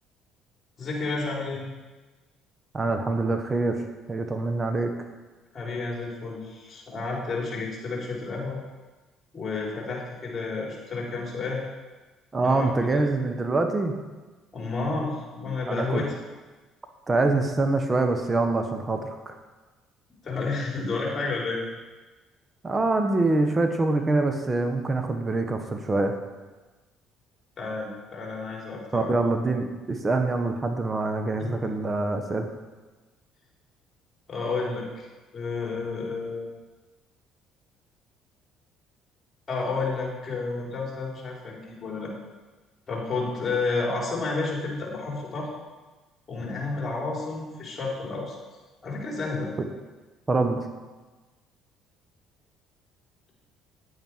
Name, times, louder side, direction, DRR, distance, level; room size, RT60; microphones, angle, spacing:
voice 1, 0.8-1.6 5.5-8.6 9.3-11.6 12.4-13.0 14.5-16.1 20.2-21.6 27.6-29.1 31.4-31.5 34.3-35.1 35.3-36.4 39.5-42.1 42.9-45.5 46.3-48.3 48.8-49.5, left 3 dB, 35° left, -3 dB, 4.1 m, -31 dB
voice 2, 2.7-3.8 4.1-4.9 12.3-14.0 15.7-16.0 17.1-19.3 22.6-26.1 28.9-32.5 50.3-50.6, right 2 dB, 30° right, 5 dB, 1.5 m, -25 dB
9.8 x 9.1 x 4.8 m, 1.2 s
hypercardioid pair, 65°, 0 cm